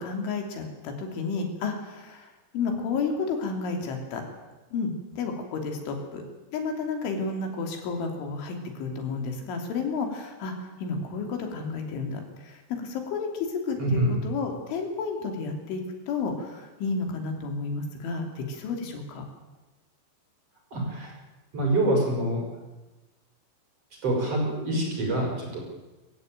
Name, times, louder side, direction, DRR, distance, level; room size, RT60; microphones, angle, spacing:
voice 1, 0.0-4.2 4.7-6.2 6.5-19.2, left 4 dB, 80° left, 4 dB, 5.5 m, -31 dB
voice 2, 13.8-14.1 20.7-21.1 21.5-22.4 24.0-25.6, right 1 dB, 30° right, 0 dB, 6.7 m, -25 dB
24.5 x 15.0 x 9.2 m, 1.2 s
omnidirectional pair, 5.4 m